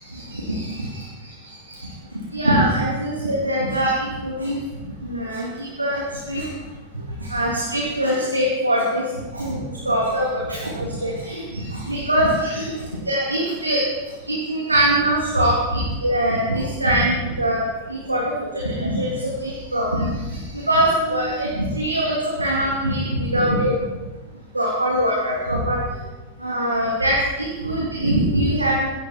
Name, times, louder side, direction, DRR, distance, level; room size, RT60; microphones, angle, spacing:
voice 1, 0.1-1.0 1.4-1.9 2.3-4.6 5.0-6.5 7.2-13.8 14.2-17.6 17.9-23.7 24.5-25.8 26.4-28.9, right 1 dB, 85° right, -4 dB, 3.0 m, -23 dB
16.5 x 15.5 x 4.6 m, 1.1 s
figure-of-eight pair, 90°, 0 cm